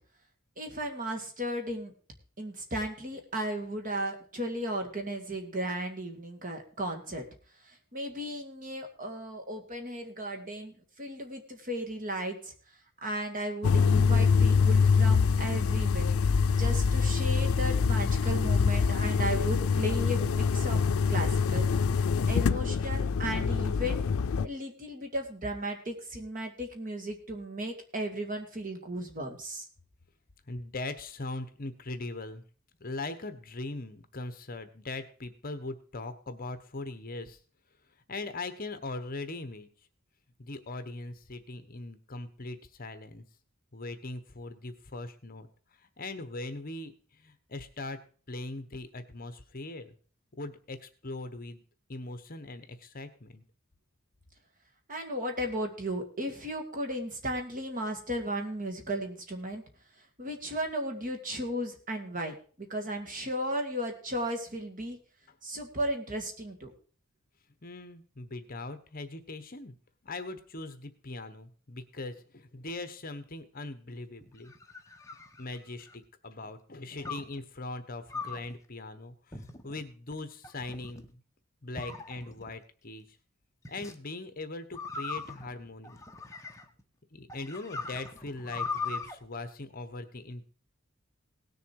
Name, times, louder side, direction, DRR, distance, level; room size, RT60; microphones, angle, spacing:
voice 1, 0.6-1.9 2.4-7.2 7.7-12.5 13.0-16.1 16.5-20.8 21.1-21.7 22.3-24.1 24.4-29.7 54.9-59.6 60.2-65.0 65.4-66.7, right 1 dB, 40° right, 4 dB, 2.2 m, -35 dB
sound 1, 13.6-24.5, left 5 dB, 90° left, 0.4 m, -25 dB
voice 2, 30.5-32.4 32.8-37.4 38.1-39.7 40.4-43.2 43.7-45.5 46.0-46.9 47.2-48.0 48.3-49.9 50.3-51.6 51.9-53.4 67.6-69.7 70.0-74.5 75.4-81.2 81.6-83.0 83.7-86.0 87.1-90.5, left 2 dB, 45° left, 10 dB, 1.1 m, -40 dB
sound 2, 74.2-76.0 77.0-77.4 78.1-78.5 79.3-79.8 80.4-81.1 81.8-82.5 83.6-83.9 84.7-86.8 87.3-89.1, left 4 dB, 15° left, 1.0 m, -40 dB
18.0 x 6.8 x 4.7 m, 0.42 s
head